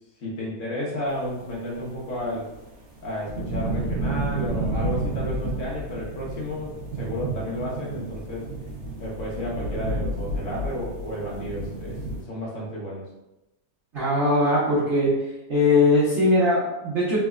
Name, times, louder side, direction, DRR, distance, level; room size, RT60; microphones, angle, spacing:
voice 1, 0.2-2.5 3.0-8.5 9.0-13.0, equal, 55° left, -5 dB, 1.2 m, -32 dB
sound 1, 1.7-12.2, right 2 dB, 75° right, 1.4 m, -31 dB
voice 2, 13.9-15.2 15.5-17.2, left 2 dB, 50° right, -11 dB, 1.2 m, -20 dB
3.5 x 3.2 x 2.3 m, 0.97 s
omnidirectional pair, 1.7 m